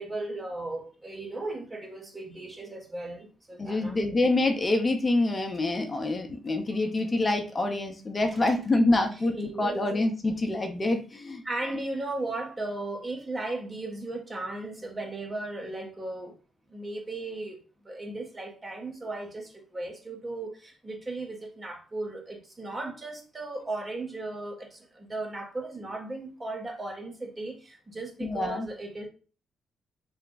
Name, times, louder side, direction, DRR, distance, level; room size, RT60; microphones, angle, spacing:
voice 1, 0.0-4.0 9.3-9.8 11.4-16.4 16.7-17.6 17.8-29.1, right 2 dB, 30° right, 1.2 m, -36 dB
voice 2, 3.6-11.4 28.2-28.7, left 2 dB, 35° left, 0.7 m, -26 dB
3.4 x 2.2 x 3.9 m
hypercardioid pair, 45°, 0 cm